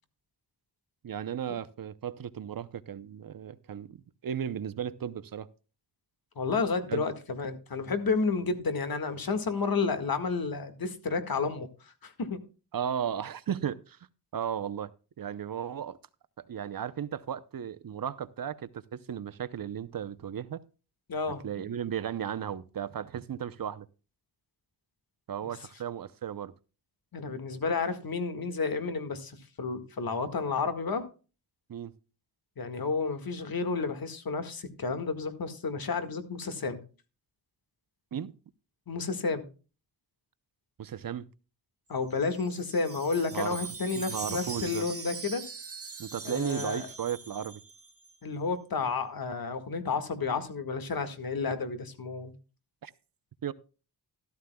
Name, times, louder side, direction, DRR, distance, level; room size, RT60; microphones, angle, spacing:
voice 1, 1.0-5.5 6.9-7.0 12.7-14.0 14.3-14.9 15.2-16.0 16.4-20.6 21.4-23.9 25.3-26.5 31.7-31.9 38.1-38.3 40.8-41.3 43.3-43.6 43.9-44.9 46.0-47.6 52.8-52.9 53.4-53.5, right 9 dB, 55° right, 0.7 m, -35 dB
voice 2, 6.4-11.7 12.0-12.4 21.1-21.4 27.1-31.0 32.6-36.8 38.9-39.4 41.9-45.4 46.2-46.9 48.2-52.3, left 4 dB, 60° left, 1.8 m, -31 dB
Wind chime, 42.0-48.2, right 5 dB, 35° right, 1.5 m, -42 dB
13.0 x 13.0 x 2.3 m
wide cardioid pair, 90°, 41 cm